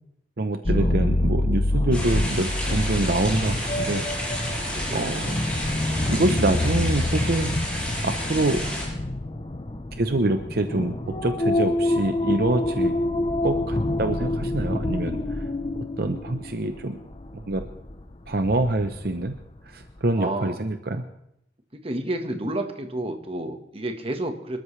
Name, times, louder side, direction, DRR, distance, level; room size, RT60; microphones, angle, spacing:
voice 1, 0.4-4.0 4.9-5.3 6.1-7.6 7.8-8.6 10.0-11.0 11.2-12.9 13.4-15.4 16.0-17.0 17.3-17.6 18.3-19.4 19.7-21.0, right 2 dB, 60° right, 7 dB, 0.8 m, -25 dB
sound 1, 0.7-19.4 19.8-20.0, left 1 dB, 30° left, 0.8 m, -27 dB
sound 2, 1.9-8.8, equal, 5° left, 6.7 m, -31 dB
voice 2, 4.7-5.1 20.1-20.6 21.8-24.6, right 1 dB, 35° right, 6 dB, 1.5 m, -30 dB
26.0 x 13.5 x 3.3 m, 0.77 s
head